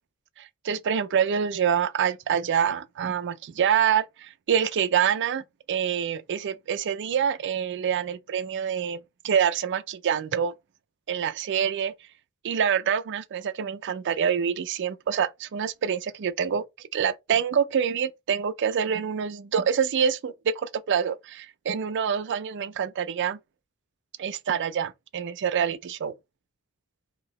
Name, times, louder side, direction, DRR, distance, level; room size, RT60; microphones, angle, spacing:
voice 1, 0.4-9.0 9.2-10.5 11.1-11.9 12.4-16.6 16.9-23.4 24.2-26.1, right 8 dB, 55° right, 0.4 m, -26 dB
2.9 x 2.7 x 4.1 m
head